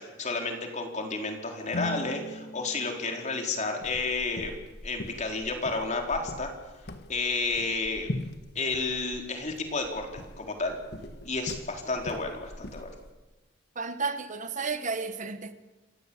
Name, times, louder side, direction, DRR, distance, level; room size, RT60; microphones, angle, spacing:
voice 1, 0.0-4.5 4.8-6.5 7.1-8.1 8.5-10.8 11.2-12.9, left 3 dB, 40° left, 4.3 m, -31 dB
sound 1, 1.7-4.1, left 1 dB, 75° left, 1.7 m, -39 dB
sound 2, 3.8-13.1, left 1 dB, 55° left, 1.8 m, -42 dB
voice 2, 13.7-15.5, right 4 dB, 40° right, 1.3 m, -32 dB
28.5 x 16.0 x 8.8 m
head